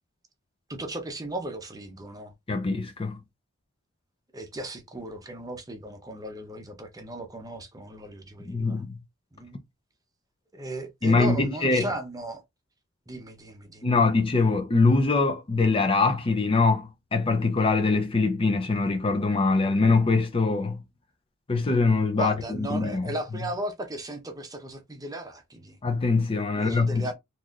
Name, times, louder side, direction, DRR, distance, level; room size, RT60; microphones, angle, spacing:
voice 1, 0.7-2.3 4.3-8.8 9.3-9.6 10.5-12.4 13.1-13.9 22.2-25.8 26.5-27.1, right 1 dB, 15° right, 0.7 m, -36 dB
voice 2, 2.5-3.2 8.4-9.0 11.0-11.9 13.8-20.8 21.5-23.1 25.8-27.1, left 3 dB, 25° left, 0.5 m, -23 dB
4.0 x 2.9 x 2.4 m
head